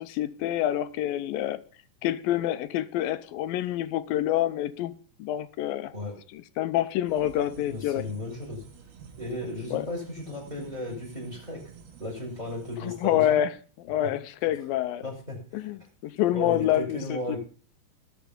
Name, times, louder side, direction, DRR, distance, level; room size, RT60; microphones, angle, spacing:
voice 1, 0.0-1.6 2.0-4.9 5.2-5.9 6.3-8.0 9.7-9.9 12.8-15.0 15.5-17.4, left 12 dB, 80° left, 2.4 m, -27 dB
sound 1, 7.1-13.1, right 6 dB, 80° right, 4.0 m, -50 dB
voice 2, 7.6-8.6 9.2-11.6 12.0-13.4 14.0-14.1 15.0-15.7 16.3-17.4, left 1 dB, 10° right, 6.0 m, -35 dB
20.0 x 7.2 x 5.3 m
omnidirectional pair, 4.4 m